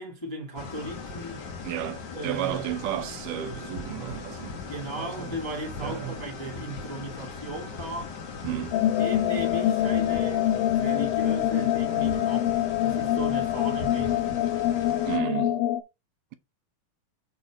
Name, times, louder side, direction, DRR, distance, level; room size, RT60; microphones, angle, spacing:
voice 1, 0.0-1.5 2.1-2.7 4.7-8.2 9.0-12.5 12.8-14.3, right 1 dB, 15° left, 1.1 m, -36 dB
sound 1, 0.6-15.2, left 4 dB, 55° left, 1.1 m, -39 dB
voice 2, 1.6-4.6 4.9-5.3 5.8-6.2 8.4-8.8 12.2-12.3 15.1-15.6, right 13 dB, 80° right, 2.1 m, -33 dB
sound 2, 8.7-15.8, left 12 dB, 85° left, 2.4 m, -25 dB
6.9 x 4.1 x 4.7 m
omnidirectional pair, 3.9 m